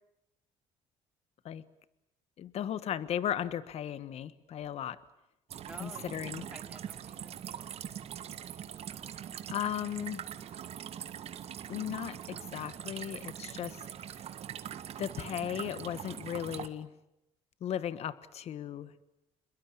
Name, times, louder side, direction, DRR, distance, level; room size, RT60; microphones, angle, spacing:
voice 1, 2.4-5.0 5.8-6.4 9.5-10.2 11.7-14.1 15.0-16.9 17.6-18.9, left 10 dB, 60° left, 16 dB, 1.3 m, -36 dB
sound 1, 5.5-16.7, right 9 dB, 55° right, 1.7 m, -42 dB
voice 2, 5.7-7.7, right 1 dB, 10° right, 7 dB, 3.2 m, -52 dB
27.5 x 22.0 x 8.7 m, 0.87 s
cardioid pair, 95°, 12 cm